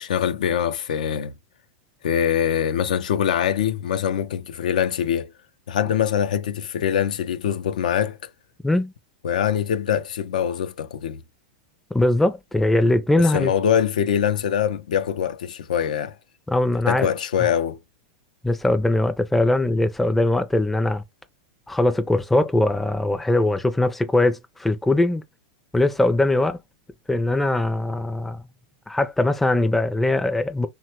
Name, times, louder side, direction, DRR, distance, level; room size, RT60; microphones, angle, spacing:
voice 1, 0.0-1.3 2.0-5.3 5.7-8.2 9.2-11.2 13.2-16.1 16.9-17.8, left 9 dB, 90° left, 0.4 m, -23 dB
voice 2, 11.9-13.5 16.5-17.1 18.4-21.0 21.7-25.2 25.7-26.6 27.1-28.4 28.9-30.7, left 2 dB, 5° left, 0.4 m, -21 dB
3.3 x 2.2 x 2.9 m
supercardioid pair, 135°, 4 cm